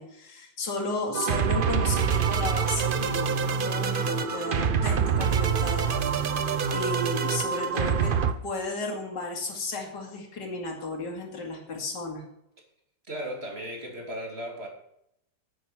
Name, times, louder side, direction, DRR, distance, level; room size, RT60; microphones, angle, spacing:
voice 1, 0.0-5.9 6.3-8.1 8.4-12.2, left 2 dB, 65° left, 0 dB, 3.0 m, -34 dB
sound 1, 1.1-8.3, right 6 dB, 85° right, 0.4 m, -26 dB
voice 2, 13.1-14.7, equal, 35° right, 0 dB, 3.0 m, -36 dB
9.8 x 9.0 x 6.0 m, 0.75 s
omnidirectional pair, 2.0 m